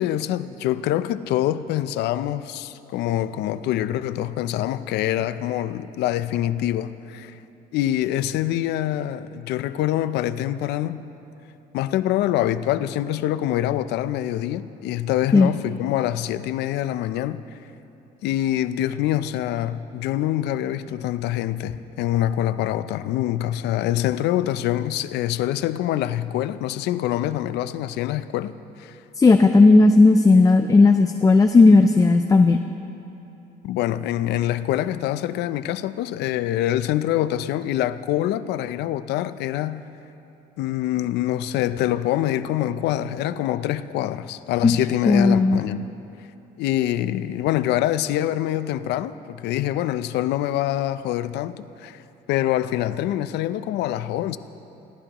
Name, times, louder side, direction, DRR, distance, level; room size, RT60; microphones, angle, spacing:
voice 1, 0.0-7.4 7.7-11.1 11.7-17.6 18.2-29.0 33.6-39.8 40.6-45.9 46.6-52.0 52.3-54.4, left 13 dB, 80° left, 0.6 m, -25 dB
voice 2, 29.2-32.6 44.6-44.8 45.1-45.6, left 3 dB, 20° left, 0.5 m, -14 dB
24.5 x 17.5 x 3.0 m
cardioid pair, 110°, 17 cm